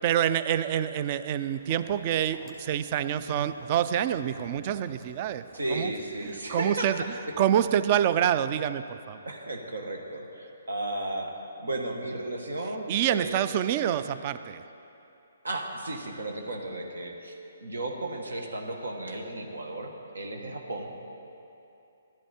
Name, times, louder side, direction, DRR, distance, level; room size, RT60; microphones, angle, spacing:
voice 1, 0.0-5.4 5.7-5.9 6.2-9.2 12.9-14.6, right 10 dB, 35° right, 13 dB, 0.4 m, -27 dB
Walk footsteps, 1.3-7.9, right 2 dB, 20° right, 1.8 m, -54 dB
voice 2, 5.5-7.1 9.2-11.3 11.6-13.4 15.4-17.4 17.6-20.9, right 2 dB, 85° right, 3 dB, 1.3 m, -34 dB
12.0 x 10.5 x 4.3 m, 2.8 s
hypercardioid pair, 145°, 0 cm